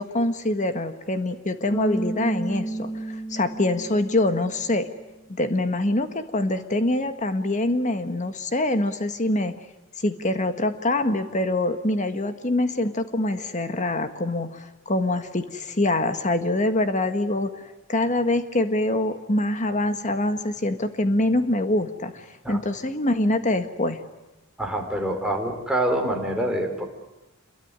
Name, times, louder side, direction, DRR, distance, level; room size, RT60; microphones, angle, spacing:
voice 1, 0.0-4.9 5.3-9.5 10.0-17.5 17.9-24.0, left 1 dB, 35° left, 9 dB, 1.7 m, -24 dB
Bass guitar, 1.7-4.9, right 2 dB, 15° left, 2.8 m, -32 dB
voice 2, 24.6-26.9, right 1 dB, 5° right, 1 dB, 3.9 m, -26 dB
27.0 x 22.5 x 9.8 m, 1.0 s
head